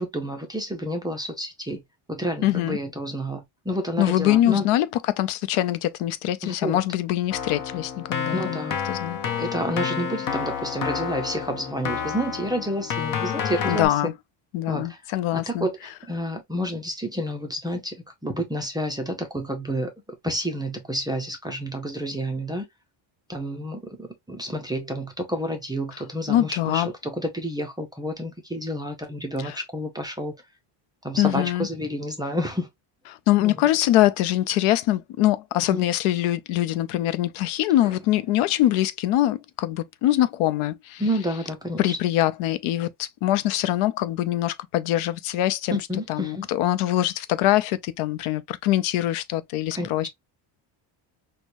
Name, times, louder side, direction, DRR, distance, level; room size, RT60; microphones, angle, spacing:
voice 1, 0.0-1.8 2.1-4.7 6.4-6.8 8.3-8.8 9.4-13.9 14.7-15.0 15.3-19.9 20.2-22.7 23.3-30.4 31.0-32.7 33.4-33.6 35.7-35.9 41.0-42.0 45.9-46.5 49.7-50.1, equal, 10° right, 0.4 m, -30 dB
voice 2, 2.4-2.8 4.0-8.6 8.9-9.2 13.7-14.1 14.5-15.7 26.3-26.9 29.4-29.6 31.2-31.7 33.3-41.0 41.8-45.8 46.1-50.1, left 14 dB, 80° left, 0.6 m, -23 dB
Keyboard (musical), 7.3-13.9, left 7 dB, 45° left, 0.8 m, -29 dB
4.5 x 2.2 x 2.5 m
cardioid pair, 155°, 49 cm